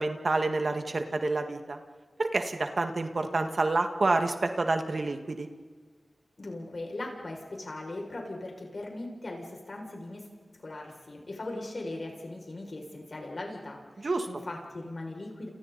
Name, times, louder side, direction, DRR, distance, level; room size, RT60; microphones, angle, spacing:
voice 1, 0.0-1.8 2.2-5.5 14.0-14.3, right 3 dB, 65° right, 6 dB, 1.9 m, -28 dB
voice 2, 6.4-10.3 10.5-15.5, left 2 dB, 60° left, 0 dB, 6.6 m, -39 dB
29.0 x 29.0 x 4.3 m, 1.5 s
cardioid pair, 45°, 0 cm